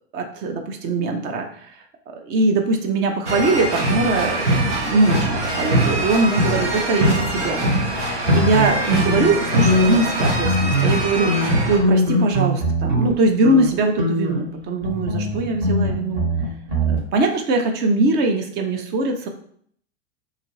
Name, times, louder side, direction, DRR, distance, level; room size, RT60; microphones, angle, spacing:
voice 1, 0.1-1.5 2.2-7.7 8.3-16.2 16.9-19.3, right 2 dB, 30° right, 4 dB, 0.5 m, -21 dB
sound 1, 3.3-11.8, right 1 dB, 85° right, 1.0 m, -22 dB
sound 2, 8.3-10.1 10.4-11.0 11.3-13.1 13.4-13.7 14.0-17.0, equal, 60° right, 1.4 m, -22 dB
2.8 x 2.4 x 3.0 m, 0.62 s
figure-of-eight pair, 95°, 34 cm